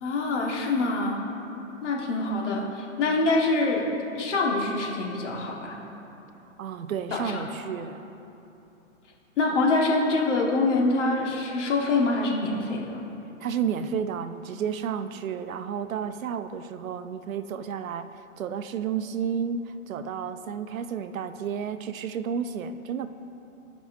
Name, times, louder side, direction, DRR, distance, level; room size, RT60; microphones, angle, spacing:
voice 1, 0.0-1.2 1.8-3.9 4.1-5.7 7.1-7.5 9.4-13.0, left 3 dB, 60° left, -1 dB, 1.5 m, -25 dB
voice 2, 6.6-8.1 13.4-23.1, right 7 dB, 80° right, 11 dB, 0.6 m, -31 dB
14.5 x 5.4 x 2.6 m, 3.0 s
hypercardioid pair, 155°, 40 cm